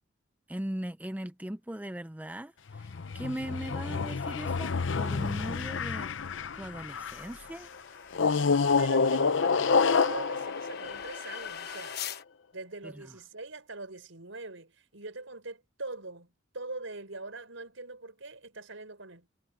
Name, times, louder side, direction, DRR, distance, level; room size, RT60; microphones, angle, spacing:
voice 1, 0.5-6.1 6.5-7.7 12.8-13.1, right 1 dB, 10° right, 0.5 m, -39 dB
sound 1, 2.7-7.3 8.1-11.7, left 5 dB, 75° left, 0.7 m, -28 dB
sound 2, 4.6-12.2, left 8 dB, 55° left, 1.3 m, -46 dB
voice 2, 8.8-12.0 12.5-19.3, right 2 dB, 85° right, 5.3 m, -42 dB
head